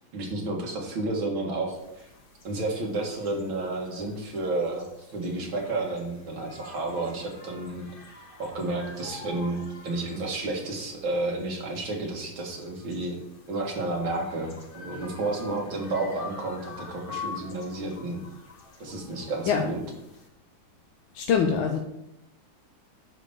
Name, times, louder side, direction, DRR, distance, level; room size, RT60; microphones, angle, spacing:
voice 1, 0.1-2.1 2.4-4.9 5.1-7.9 8.4-13.2 13.5-18.2 18.8-19.8, right 2 dB, 75° right, 0 dB, 2.5 m, -31 dB
sound 1, 1.7-20.3, left 4 dB, 35° left, 0.9 m, -47 dB
voice 2, 21.1-21.8, left 6 dB, 80° left, 2 dB, 1.6 m, -23 dB
9.9 x 3.5 x 6.9 m, 0.87 s
omnidirectional pair, 2.2 m